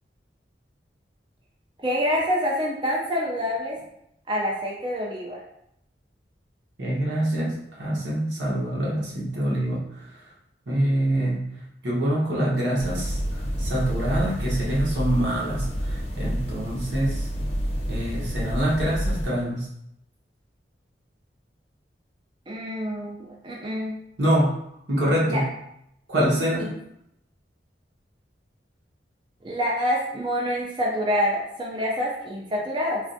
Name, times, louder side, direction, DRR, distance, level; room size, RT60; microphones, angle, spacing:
voice 1, 1.8-3.8 4.3-5.4 22.5-23.9 25.3-25.4 26.6-26.7 29.4-33.0, equal, 30° right, -2 dB, 0.4 m, -26 dB
voice 2, 6.8-9.8 10.7-11.4 11.8-17.3 17.9-19.7 24.2-24.6 24.9-25.4 26.1-26.7, right 1 dB, 85° right, -5 dB, 0.9 m, -25 dB
sound 1, 12.8-19.3, equal, 35° left, 0.6 m, -29 dB
3.2 x 2.4 x 2.5 m, 0.78 s
head